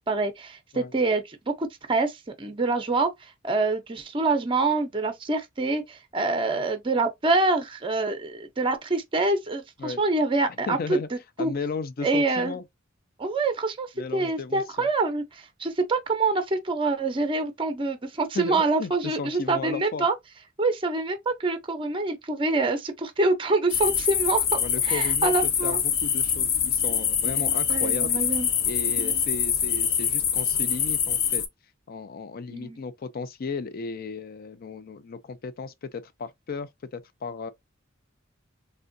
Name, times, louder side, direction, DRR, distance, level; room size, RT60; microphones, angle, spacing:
voice 1, 0.0-3.1 3.4-11.5 12.0-12.6 13.2-20.1 20.6-25.8 27.3-28.5 29.0-29.2 32.5-32.8, right 3 dB, 25° right, 0.5 m, -26 dB
voice 2, 10.7-11.1 11.4-12.6 14.0-14.9 18.3-20.1 24.6-25.3 25.6-28.2 28.7-31.4 31.9-37.5, left 4 dB, 50° left, 0.4 m, -35 dB
sound 1, 23.7-31.5, left 8 dB, 85° left, 0.8 m, -25 dB
3.5 x 2.2 x 2.5 m
head